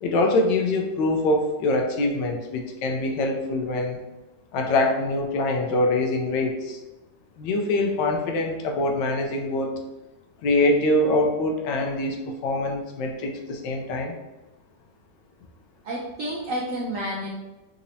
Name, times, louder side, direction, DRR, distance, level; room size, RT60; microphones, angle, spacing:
voice 1, 0.0-4.0 4.5-6.8 7.4-9.7 10.4-14.1, left 2 dB, 85° left, 2 dB, 1.3 m, -24 dB
voice 2, 15.8-17.3, equal, 75° right, -3 dB, 0.7 m, -30 dB
4.0 x 2.9 x 2.6 m, 1.1 s
omnidirectional pair, 2.0 m